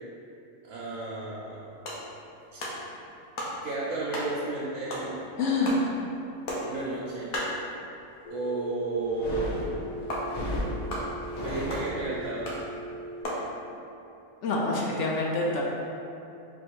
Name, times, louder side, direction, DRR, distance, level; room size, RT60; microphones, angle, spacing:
voice 1, 0.6-1.7 2.5-2.7 3.6-5.2 6.6-7.4 8.3-9.9 11.4-12.5, right 3 dB, 80° right, -7 dB, 1.1 m, -33 dB
sound 1, 1.6-8.6 8.9-9.0 9.3-9.4 10.1-13.5, left 1 dB, 80° left, 1.2 m, -37 dB
voice 2, 5.4-5.8 14.4-15.6, left 3 dB, 65° left, -3 dB, 0.8 m, -26 dB
Telephone, 8.2-13.2, right 2 dB, 5° left, 0.5 m, -40 dB
sound 2, 9.0-12.3, left 1 dB, 40° left, 1.0 m, -34 dB
4.1 x 2.5 x 4.5 m, 2.7 s
omnidirectional pair, 1.5 m